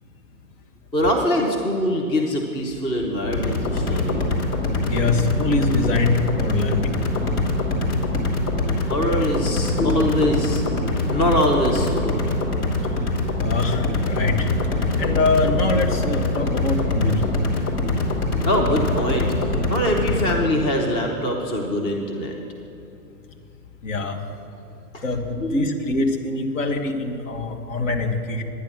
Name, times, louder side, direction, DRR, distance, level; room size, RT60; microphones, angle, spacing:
voice 1, 0.9-4.3 8.8-12.4 17.0-22.4 24.9-25.0 25.4-25.7, equal, 10° left, 1 dB, 0.7 m, -24 dB
sound 1, 3.2-20.4, left 2 dB, 70° left, 2.8 m, -24 dB
voice 2, 4.9-6.9 13.4-14.5 15.0-17.3 23.8-24.2 25.0-28.4, left 3 dB, 55° left, 3 dB, 1.5 m, -23 dB
10.5 x 10.0 x 6.2 m, 2.7 s
hypercardioid pair, 130°, 47 cm